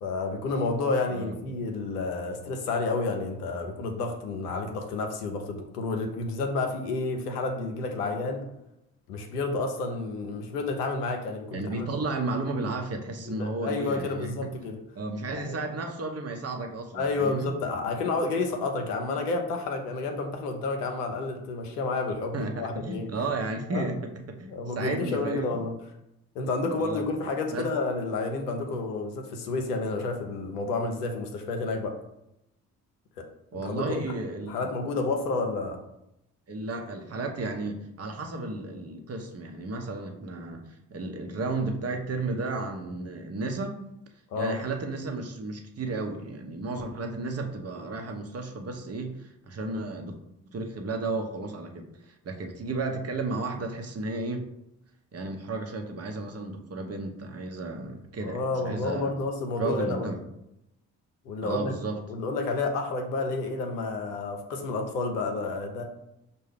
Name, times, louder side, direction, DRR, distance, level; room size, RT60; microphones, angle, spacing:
voice 1, 0.0-8.4 9.1-11.9 13.3-14.8 15.3-15.6 16.9-23.1 23.7-23.9 24.5-25.7 26.3-32.0 33.2-33.3 33.6-34.0 34.4-35.8 44.3-44.6 58.2-60.1 61.3-61.7 62.1-65.8, left 3 dB, 85° left, 4 dB, 0.6 m, -30 dB
voice 2, 11.5-14.5 14.9-17.5 22.3-24.0 24.3-25.6 26.8-27.0 27.5-27.7 33.5-34.7 36.5-43.8 44.4-50.2 50.5-54.5 55.1-59.1 59.6-60.2 61.4-62.0, right 3 dB, 35° right, 3 dB, 0.8 m, -33 dB
5.4 x 2.2 x 3.3 m, 0.85 s
figure-of-eight pair, 40°, 45 cm